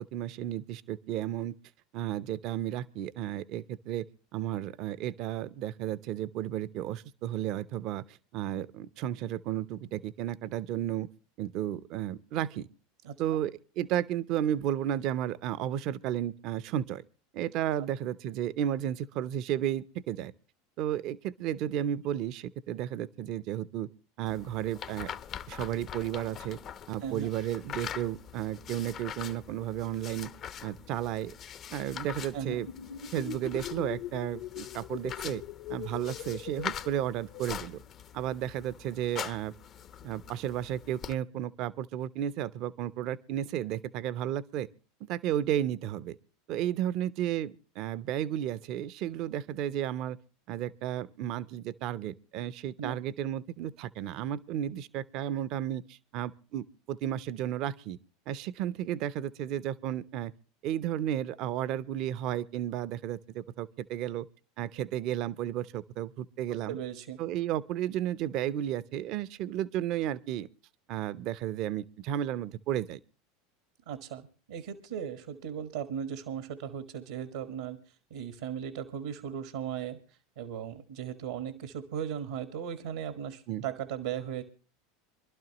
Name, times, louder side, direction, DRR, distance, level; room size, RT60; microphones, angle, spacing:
voice 1, 0.0-1.5 1.9-4.1 4.3-11.1 11.4-12.7 13.2-17.0 17.3-20.3 20.8-23.9 24.2-25.1 25.5-26.6 26.9-30.3 30.6-31.3 31.7-32.7 33.1-35.4 35.7-37.8 38.1-39.5 40.0-44.7 45.0-46.2 46.5-50.2 50.5-58.0 58.3-60.3 60.6-64.3 64.6-66.8 67.2-70.5 70.9-73.0 83.5-83.6, right 11 dB, 55° right, 0.7 m, -33 dB
sound 1, 24.3-41.2, left 8 dB, 40° left, 0.8 m, -43 dB
sound 2, 32.3-37.7, left 10 dB, 65° left, 1.1 m, -42 dB
voice 2, 66.5-67.2 73.9-77.8 78.1-80.0 80.4-84.4, right 8 dB, 75° right, 1.5 m, -37 dB
25.5 x 12.0 x 3.0 m
hypercardioid pair, 85°, 0 cm